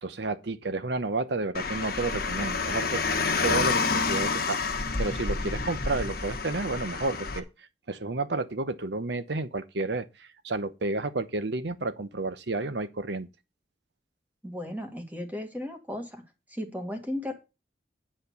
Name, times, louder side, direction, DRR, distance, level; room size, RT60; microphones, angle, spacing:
voice 1, 0.0-4.7 5.0-7.4 7.9-13.3, right 3 dB, 75° right, 0.9 m, -31 dB
Car, 1.5-7.4, left 4 dB, 55° left, 1.3 m, -29 dB
voice 2, 14.4-16.2 16.5-17.3, left 1 dB, 10° right, 1.8 m, -35 dB
9.9 x 4.4 x 6.9 m
head